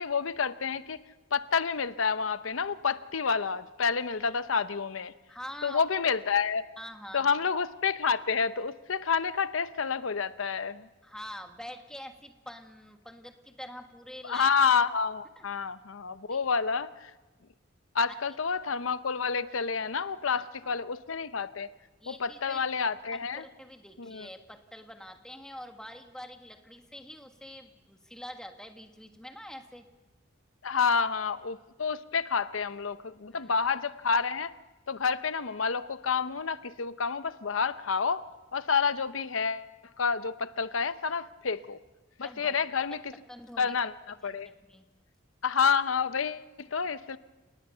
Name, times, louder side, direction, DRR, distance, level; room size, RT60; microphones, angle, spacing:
voice 1, 0.0-5.1 5.6-6.6 7.1-10.9 14.2-17.1 17.9-21.7 22.1-23.4 24.0-24.3 30.6-34.5 34.9-38.2 38.5-39.7 40.0-41.8 42.2-43.1 43.6-44.5 45.4-47.2, left 5 dB, 85° left, 13 dB, 0.8 m, -29 dB
voice 2, 5.3-5.8 6.8-7.3 11.0-14.5 15.4-15.5 16.3-16.4 20.3-20.8 22.0-22.6 23.3-29.9 33.3-33.5 42.2-42.6 43.3-43.7 44.2-44.9, equal, 5° left, 5 dB, 1.6 m, -45 dB
30.0 x 18.5 x 5.7 m, 1.2 s
head